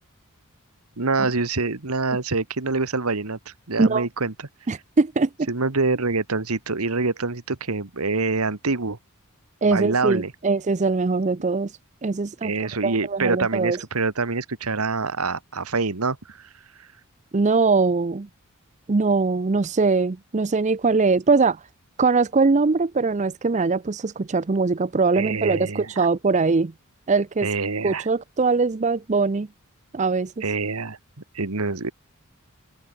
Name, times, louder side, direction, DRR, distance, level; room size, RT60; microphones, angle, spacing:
voice 1, 1.0-4.3 5.5-9.0 9.6-10.3 12.4-16.5 16.8-16.9 25.1-26.1 27.4-28.1 30.4-31.0 31.3-31.9, right 3 dB, 80° right, 1.6 m, -25 dB
voice 2, 4.7-5.5 9.6-11.7 12.0-12.5 12.8-13.8 17.3-18.3 18.9-21.6 22.0-26.7 27.1-27.5 27.8-29.5 29.9-30.4, right 4 dB, 30° right, 0.5 m, -21 dB
open air
head